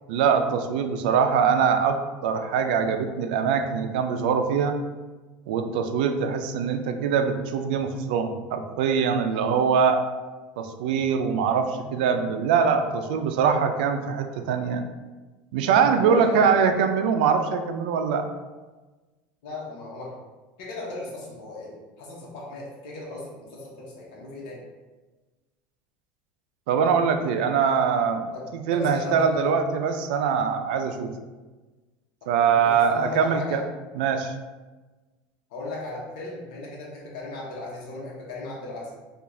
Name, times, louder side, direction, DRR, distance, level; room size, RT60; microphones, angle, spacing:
voice 1, 0.1-4.8 5.5-10.0 10.6-14.8 15.5-18.3 26.7-28.3 28.5-31.1 32.3-33.6 34.0-34.3, right 6 dB, 85° right, 7 dB, 0.4 m, -23 dB
voice 2, 15.8-16.5 19.4-20.1 20.6-24.6 28.3-29.5 32.4-33.6 35.5-38.9, left 2 dB, 80° left, -4 dB, 0.9 m, -37 dB
4.7 x 2.4 x 2.6 m, 1.2 s
supercardioid pair, 150°, 5 cm